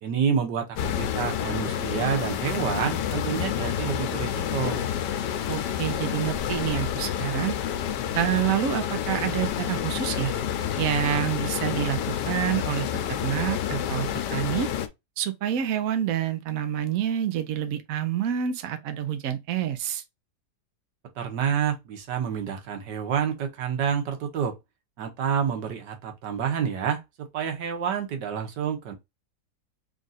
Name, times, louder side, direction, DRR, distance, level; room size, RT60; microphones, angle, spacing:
voice 1, 0.0-4.8 21.2-24.5 25.0-28.9, right 7 dB, 90° right, 1.6 m, -28 dB
sound 1, 0.8-14.9, left 9 dB, 90° left, 1.3 m, -29 dB
voice 2, 5.5-7.6 8.1-10.3 10.8-12.0 12.3-12.9 13.2-14.7 15.2-20.0, right 10 dB, 65° right, 1.0 m, -27 dB
3.7 x 2.5 x 4.0 m
omnidirectional pair, 1.8 m